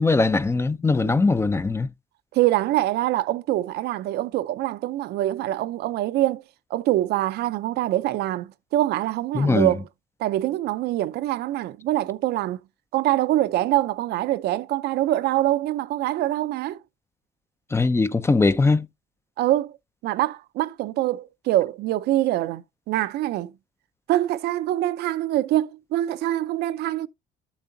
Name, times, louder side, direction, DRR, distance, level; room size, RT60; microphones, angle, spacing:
voice 1, 0.0-1.9 9.3-9.7 17.7-18.9, left 3 dB, 15° left, 0.5 m, -20 dB
voice 2, 2.3-6.4 6.7-9.9 10.2-12.6 12.9-16.8 19.4-19.7 20.0-23.5 24.1-27.1, right 14 dB, 75° right, 0.5 m, -24 dB
12.5 x 7.1 x 2.6 m
cardioid pair, 110°, 17 cm